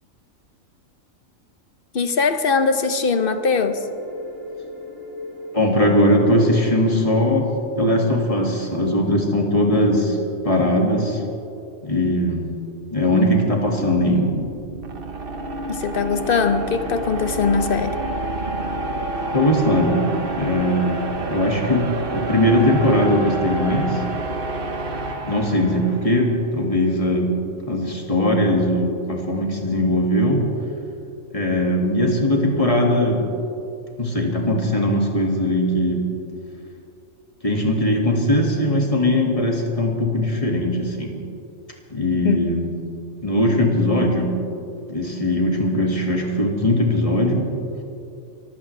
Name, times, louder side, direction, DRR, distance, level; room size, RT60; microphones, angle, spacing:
voice 1, 1.9-3.8 15.7-18.0 42.2-42.5, left 5 dB, 50° left, 9 dB, 0.9 m, -21 dB
sound 1, 3.1-8.4, left 1 dB, 15° right, 5.0 m, -38 dB
voice 2, 5.5-7.5 7.8-10.2 10.4-11.2 11.8-12.5 12.9-14.3 19.3-20.0 20.4-24.0 25.3-27.3 27.7-30.5 31.3-33.2 34.0-36.1 37.4-41.2 41.9-42.7 43.2-44.4 44.9-47.5, left 1 dB, 25° left, 0 dB, 2.1 m, -20 dB
sound 2, 13.2-26.4, right 2 dB, 45° right, 1.1 m, -29 dB
24.5 x 15.5 x 3.3 m, 2.6 s
omnidirectional pair, 1.4 m